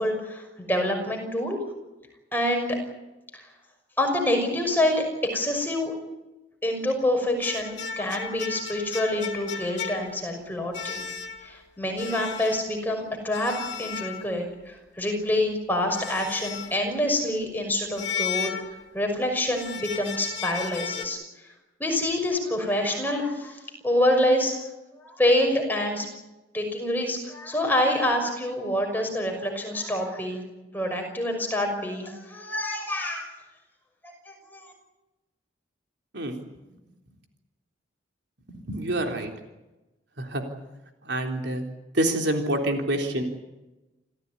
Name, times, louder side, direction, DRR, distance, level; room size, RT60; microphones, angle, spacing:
voice 1, 0.0-1.6 2.3-2.8 3.3-3.5 4.0-5.9 6.6-11.1 11.4-18.5 18.9-21.2 21.8-24.7 25.0-26.1 26.5-30.4 30.7-33.3 34.0-34.7, left 1 dB, 10° left, 2 dB, 5.9 m, -26 dB
sound 1, 7.4-10.4 10.7-11.6 12.0-12.7 13.3-14.6 15.9-16.9 18.0-19.1 19.5-21.1, left 7 dB, 60° left, 2.4 m, -35 dB
voice 2, 38.5-39.3 40.2-40.4 41.0-41.7 41.9-43.2, right 1 dB, 60° right, 3 dB, 3.6 m, -27 dB
28.0 x 15.5 x 9.7 m, 1.0 s
head